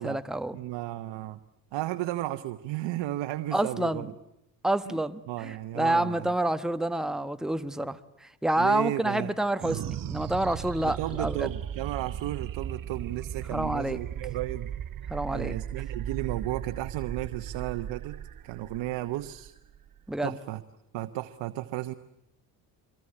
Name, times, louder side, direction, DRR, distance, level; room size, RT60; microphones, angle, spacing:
voice 1, 0.0-0.6 3.5-4.1 4.6-11.5 13.5-14.0 15.1-15.6 20.1-20.3, right 1 dB, ahead, 10 dB, 1.2 m, -28 dB
voice 2, 0.5-1.4 1.7-4.1 4.9-5.0 5.3-6.3 8.6-9.3 10.8-14.7 15.3-18.2 18.4-19.5 20.2-20.6 20.9-21.9, right 15 dB, 70° right, 9 dB, 1.1 m, -34 dB
sound 1, 9.6-20.3, right 9 dB, 45° right, 0.9 m, -37 dB
25.0 x 22.0 x 10.0 m, 0.84 s
supercardioid pair, 70°, 45 cm